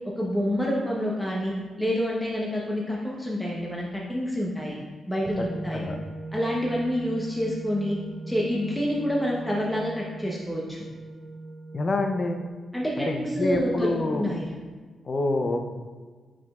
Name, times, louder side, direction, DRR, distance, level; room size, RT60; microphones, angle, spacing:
voice 1, 0.2-1.5 1.8-4.8 5.1-5.8 6.3-8.0 8.3-10.8 12.7-14.5, equal, 5° left, -4 dB, 0.9 m, -28 dB
sound 1, 5.2-12.5, right 2 dB, 35° right, 0.4 m, -40 dB
voice 2, 11.7-12.5 13.1-14.3 15.1-15.7, left 2 dB, 40° left, 5 dB, 0.6 m, -27 dB
9.2 x 5.0 x 2.4 m, 1.5 s
cardioid pair, 95°, 0 cm